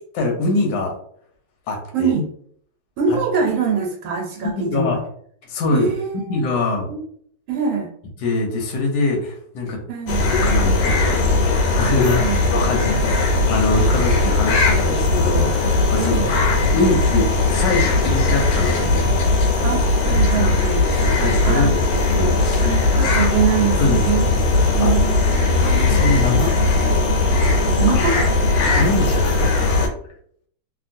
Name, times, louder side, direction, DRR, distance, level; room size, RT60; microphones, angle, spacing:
voice 1, 0.1-0.9 1.7-2.1 3.1-3.2 4.4-5.0 5.5-5.9 6.3-6.9 8.2-9.8 10.4-16.1 16.7-19.1 20.3-20.5 21.0-22.7 23.8-24.1 24.8-24.9 25.8-26.8 27.9-28.0 28.8-29.7, left 2 dB, 70° left, 2 dB, 1.3 m, -23 dB
voice 2, 1.9-2.3 3.0-5.0 5.7-6.5 6.9-7.0 7.5-7.9 9.9-10.3 12.2-13.0 15.9-16.5 19.6-20.9 21.4-21.8 22.6-24.3 24.7-26.0 27.8-28.2, right 6 dB, 80° right, -1 dB, 1.5 m, -24 dB
sound 1, 10.1-29.9, left 2 dB, 85° left, 1.5 m, -18 dB
2.9 x 2.8 x 2.5 m, 0.62 s
omnidirectional pair, 2.2 m